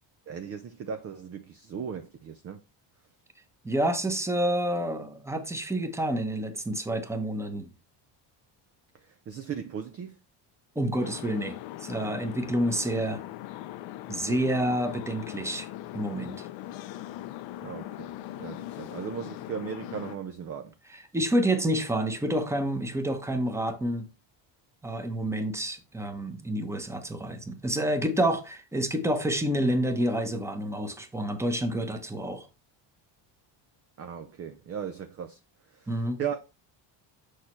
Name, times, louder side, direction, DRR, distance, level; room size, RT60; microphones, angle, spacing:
voice 1, 0.3-2.6 8.9-10.2 17.6-20.7 34.0-35.4 35.7-36.4, right 7 dB, 30° right, 0.5 m, -37 dB
voice 2, 3.6-7.7 10.8-13.2 14.1-15.7 15.9-16.5 21.1-24.1 24.8-32.5 35.9-36.2, right 1 dB, 5° right, 0.9 m, -28 dB
sound 1, 11.0-20.2, left 14 dB, 65° left, 0.6 m, -40 dB
6.5 x 5.8 x 3.1 m
cardioid pair, 125°, 50 cm